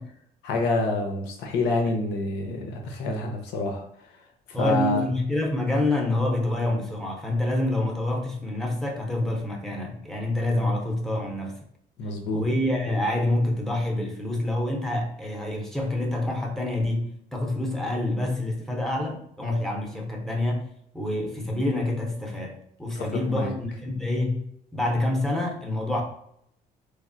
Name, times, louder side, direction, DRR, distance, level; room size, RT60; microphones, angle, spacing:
voice 1, 0.4-3.8 4.5-5.0 12.0-12.4 23.0-23.5, left 2 dB, 80° left, 2 dB, 0.6 m, -27 dB
voice 2, 4.5-11.6 12.3-20.7 20.9-26.0, left 1 dB, ahead, -1 dB, 0.6 m, -27 dB
3.1 x 2.0 x 2.5 m, 0.69 s
cardioid pair, 110°, 17 cm